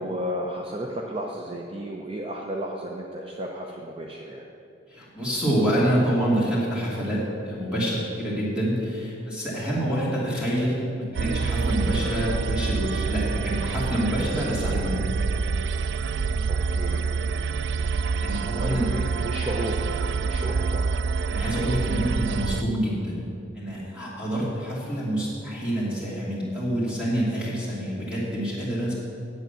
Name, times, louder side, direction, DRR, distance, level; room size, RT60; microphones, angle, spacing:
voice 1, 0.0-4.4 16.5-17.1 18.6-19.8 20.2-20.9, right 1 dB, 30° right, 0 dB, 0.7 m, -33 dB
voice 2, 4.9-15.0 17.9-18.9 21.3-23.2 23.5-28.9, equal, 5° right, -7 dB, 2.9 m, -27 dB
sound 1, 11.1-22.6, right 4 dB, 60° right, 0.3 m, -27 dB
9.2 x 8.1 x 6.9 m, 2.5 s
head